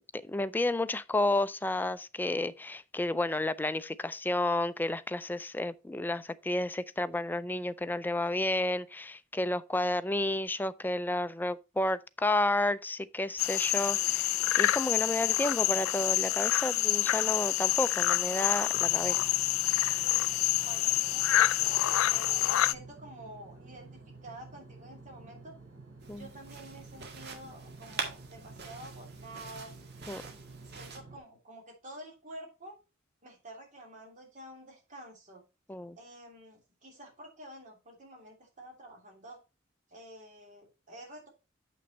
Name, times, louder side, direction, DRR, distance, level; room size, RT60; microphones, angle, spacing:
voice 1, 0.1-19.2 20.2-20.3 26.1-26.3 30.1-30.2 35.7-36.0, left 2 dB, 10° left, 0.4 m, -31 dB
sound 1, 13.4-22.7, left 15 dB, 90° left, 0.3 m, -27 dB
sound 2, 18.7-31.2, right 3 dB, 75° right, 5.1 m, -51 dB
voice 2, 20.6-25.6 26.1-29.7 30.7-32.8 33.2-35.4 36.0-39.4 39.9-41.3, right 1 dB, 40° right, 3.1 m, -49 dB
sound 3, 26.0-31.0, right 5 dB, 55° right, 1.8 m, -44 dB
7.0 x 6.0 x 4.2 m
head